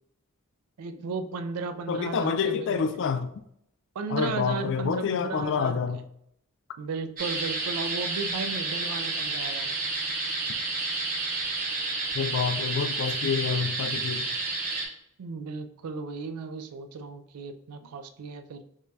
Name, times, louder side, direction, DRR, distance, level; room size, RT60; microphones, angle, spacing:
voice 1, 0.8-3.0 4.0-5.8 6.8-9.7 15.2-18.6, right 4 dB, 85° right, 0.4 m, -35 dB
voice 2, 1.9-3.3 4.1-6.0 12.1-14.3, left 6 dB, 55° left, 0.3 m, -28 dB
sound 1, 7.2-14.9, right 3 dB, 40° right, 0.7 m, -30 dB
4.8 x 2.3 x 2.7 m
head